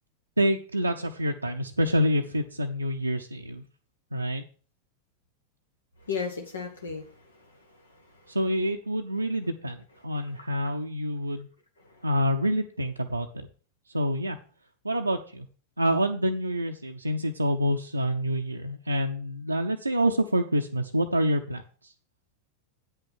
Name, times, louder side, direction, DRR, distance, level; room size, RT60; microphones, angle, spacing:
voice 1, 0.4-3.6 4.1-4.4 8.3-11.5 12.0-13.5 13.9-14.4 14.8-15.5 15.8-21.9, equal, 85° right, 2 dB, 0.6 m, -27 dB
voice 2, 6.0-8.4 11.8-12.1, left 5 dB, 75° left, 3 dB, 1.4 m, -37 dB
8.9 x 5.6 x 6.0 m, 0.40 s
figure-of-eight pair, 90°, 0 cm